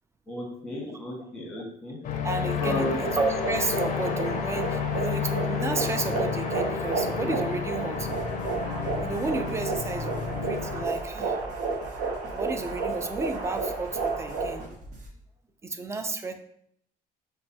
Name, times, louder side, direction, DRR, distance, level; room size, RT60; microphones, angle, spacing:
voice 1, 0.3-2.0 2.6-3.1, left 1 dB, 5° left, -4 dB, 1.3 m, -33 dB
sound 1, 2.0-10.9, left 7 dB, 50° left, 0.5 m, -31 dB
voice 2, 2.2-8.1 9.0-11.4 12.3-14.6 15.6-16.3, right 3 dB, 15° right, 7 dB, 0.3 m, -32 dB
sound 2, 2.5-14.6, right 4 dB, 75° right, 0.8 m, -32 dB
sound 3, 7.9-15.1, equal, 45° right, 0.8 m, -44 dB
5.2 x 2.2 x 2.7 m, 0.70 s
cardioid pair, 110°, 17 cm